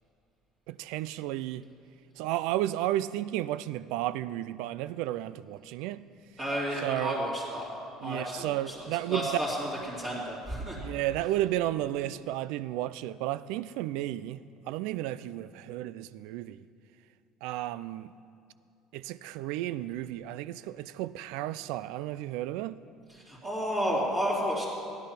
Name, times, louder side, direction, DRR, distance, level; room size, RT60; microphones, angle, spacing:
voice 1, 0.7-1.7 2.2-6.0 6.8-7.2 8.0-9.3 10.8-16.7 17.4-18.1 18.9-22.8, right 14 dB, 80° right, 0.4 m, -33 dB
voice 2, 6.4-7.7 8.0-10.8 23.1-24.7, equal, 20° right, 2.9 m, -32 dB
15.5 x 10.5 x 5.8 m
cardioid pair, 155°, 0 cm